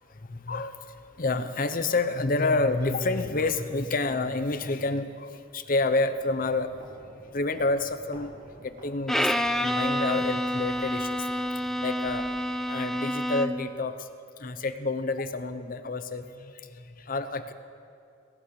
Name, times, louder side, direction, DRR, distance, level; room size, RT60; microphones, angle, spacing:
voice 1, 0.3-0.8 1.2-6.7 7.3-8.3 8.6-9.3 9.6-11.3 11.8-12.3 12.7-14.1 14.4-17.5, left 3 dB, 45° left, 10 dB, 0.7 m, -28 dB
sound 1, 6.0-13.4, right 1 dB, 45° right, 4.0 m, -51 dB
Bowed string instrument, 9.1-13.8, equal, ahead, 0.4 m, -28 dB
21.0 x 18.0 x 3.2 m, 2.5 s
head